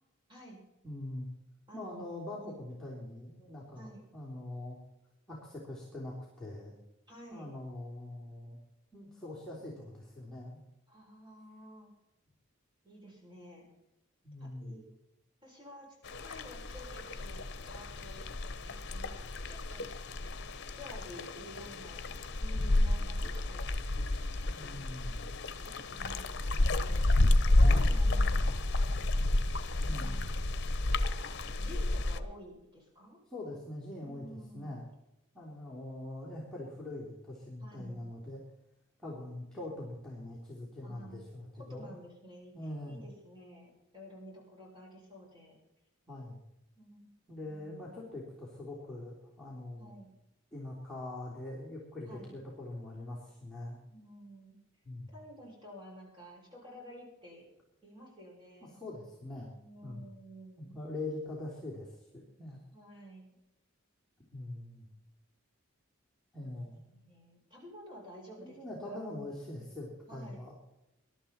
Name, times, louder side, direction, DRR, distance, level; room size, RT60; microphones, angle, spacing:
voice 1, 0.8-1.3 1.7-4.8 5.3-6.7 7.3-8.6 8.9-10.6 14.2-14.8 24.5-25.3 27.6-28.0 29.8-30.3 33.3-34.9 35.3-38.4 39.0-42.0 42.5-43.0 46.1-46.4 47.3-49.9 50.5-53.8 54.8-55.1 58.7-59.5 59.8-60.1 60.6-62.6 64.3-64.9 66.3-66.8 68.4-70.5, left 1 dB, 5° left, -7 dB, 3.2 m, -43 dB
voice 2, 1.7-2.1 2.4-2.6 3.7-4.1 7.1-7.5 10.9-11.9 12.8-13.6 14.4-14.8 15.4-15.9 16.2-18.2 18.6-19.2 19.4-19.9 20.7-22.1 22.3-23.6 24.4-24.8 25.8-27.1 27.7-28.4 29.8-30.3 31.4-33.2 34.0-34.7 37.6-38.0 40.8-41.2 41.7-42.6 42.9-45.6 46.7-48.0 49.8-50.1 52.1-52.3 53.9-54.6 55.1-57.4 57.8-58.7 59.6-60.8 62.7-63.3 66.4-66.5 66.9-68.6 68.8-69.0 70.1-70.4, equal, 20° right, -2 dB, 6.7 m, -51 dB
sound 1, 16.1-32.2, left 2 dB, 55° left, 1.0 m, -30 dB
22.0 x 12.0 x 4.4 m, 0.92 s
head